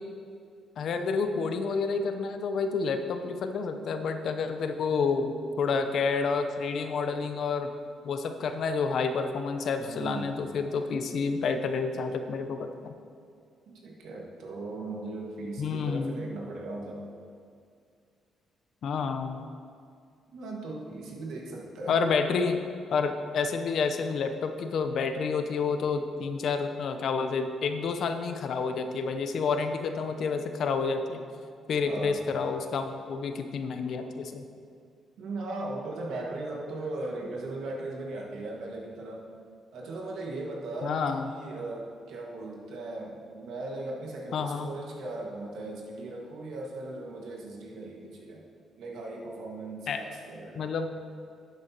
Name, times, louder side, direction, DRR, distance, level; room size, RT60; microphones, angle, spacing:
voice 1, 0.8-7.7 8.0-13.0 15.6-16.2 18.8-19.4 21.9-22.6 22.9-31.2 31.7-34.4 40.8-41.3 44.3-44.7 49.9-50.0 50.5-50.9, left 5 dB, 65° left, 7 dB, 0.7 m, -29 dB
voice 2, 9.8-10.3 13.8-17.0 20.3-22.0 31.8-32.2 34.0-34.1 35.2-39.3 39.7-48.4 48.8-50.8, right 2 dB, 80° right, -2 dB, 1.7 m, -38 dB
11.5 x 8.1 x 2.9 m, 2.3 s
cardioid pair, 90°, 0 cm